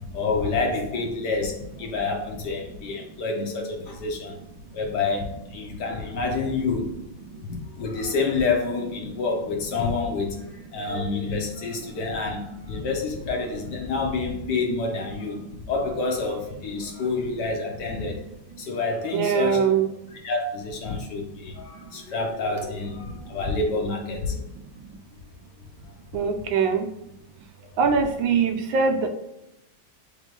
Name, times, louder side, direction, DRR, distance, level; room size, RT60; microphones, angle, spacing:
voice 1, 0.1-4.4 4.7-6.9 7.5-15.4 15.7-18.2 18.6-19.7 20.2-24.4 28.7-28.8, left 3 dB, 65° left, 2 dB, 1.2 m, -28 dB
voice 2, 19.1-19.9 26.1-26.8 27.8-29.1, right 6 dB, 75° right, 5 dB, 1.3 m, -22 dB
3.6 x 3.5 x 3.7 m, 0.89 s
omnidirectional pair, 2.2 m